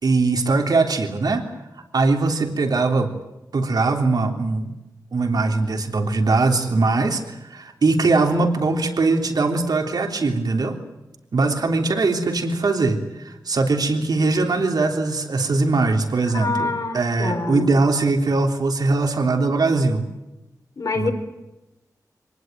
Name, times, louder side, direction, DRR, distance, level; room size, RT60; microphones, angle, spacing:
voice 1, 0.0-1.4 1.9-3.1 3.5-4.7 5.1-10.8 11.3-20.0 20.9-21.1, right 3 dB, 70° right, 3 dB, 3.4 m, -21 dB
voice 2, 16.3-17.7 20.8-21.1, left 3 dB, 65° left, 3 dB, 4.6 m, -25 dB
25.0 x 19.0 x 9.2 m, 0.99 s
wide cardioid pair, 90°, 7 cm